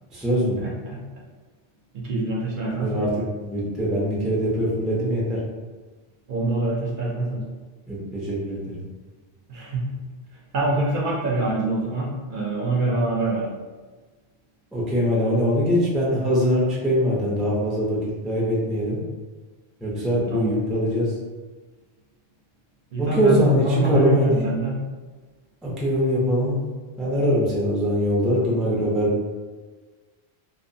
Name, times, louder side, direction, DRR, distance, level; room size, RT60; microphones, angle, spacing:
voice 1, 0.1-0.6 2.8-3.1 3.4-5.4 7.9-8.8 14.7-18.0 18.2-19.0 19.8-21.1 23.0-24.4 25.6-26.7 27.0-29.3, equal, ahead, -5 dB, 0.3 m, -22 dB
voice 2, 0.6-1.0 1.9-3.1 6.3-7.4 9.5-9.8 10.5-13.5 20.3-20.6 22.9-24.7, right 2 dB, 60° right, -3 dB, 0.6 m, -25 dB
2.8 x 2.0 x 2.6 m, 1.3 s
omnidirectional pair, 1.1 m